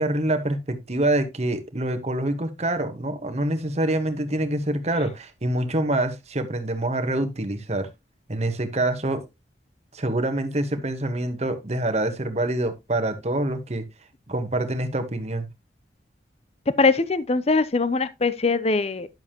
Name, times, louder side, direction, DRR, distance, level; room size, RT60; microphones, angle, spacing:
voice 1, 0.0-7.9 8.3-9.2 9.9-13.9 14.3-15.5, right 1 dB, 40° right, 1.3 m, -26 dB
voice 2, 16.7-19.1, left 3 dB, 35° left, 0.6 m, -22 dB
10.5 x 7.1 x 2.9 m
head